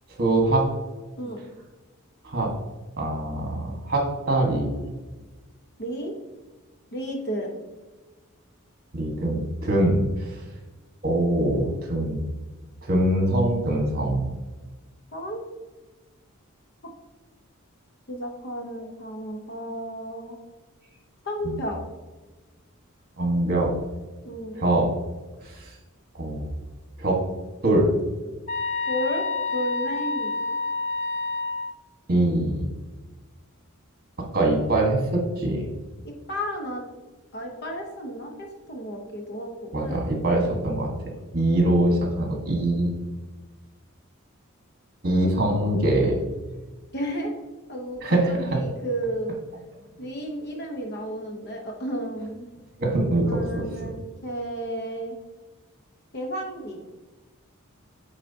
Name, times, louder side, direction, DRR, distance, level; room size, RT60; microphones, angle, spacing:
voice 1, 0.2-0.7 2.2-2.5 3.0-4.8 8.9-10.3 11.0-12.2 12.8-14.2 21.4-21.5 23.2-23.7 24.6-24.9 26.2-26.5 27.0-27.2 27.6-27.9 32.1-32.6 34.3-35.7 39.7-40.9 41.3-42.9 45.0-46.2 48.0-48.3 52.8-53.7, right 1 dB, 45° right, 1 dB, 1.5 m, -23 dB
voice 2, 5.8-6.1 6.9-7.6 15.1-15.4 18.1-20.4 21.2-21.8 24.2-24.6 28.9-29.2 29.5-30.4 36.0-36.8 37.3-40.0 46.9-47.3 47.7-49.3 50.0-52.5 53.2-55.2 56.1-56.8, equal, 50° left, 2 dB, 0.9 m, -32 dB
sound 1, 28.5-31.7, left 3 dB, 35° left, 0.4 m, -28 dB
8.9 x 3.9 x 2.8 m, 1.2 s
head